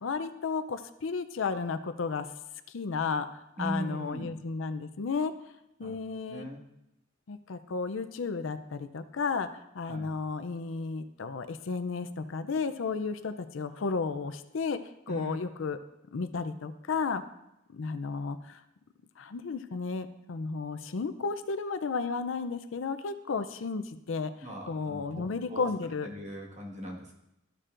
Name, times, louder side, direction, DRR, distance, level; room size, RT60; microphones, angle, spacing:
voice 1, 0.0-2.3 2.7-3.3 3.6-5.3 5.8-6.5 7.3-9.5 9.7-14.8 15.1-15.8 16.1-17.2 17.7-18.6 19.2-24.3 24.6-26.1, left 4 dB, 75° left, 11 dB, 0.5 m, -33 dB
voice 2, 3.6-4.3 5.8-6.0 6.3-6.6 9.8-10.1 15.1-15.4 24.4-25.7 26.0-27.1, right 1 dB, 35° right, -2 dB, 1.6 m, -39 dB
13.0 x 6.7 x 2.5 m, 0.88 s
head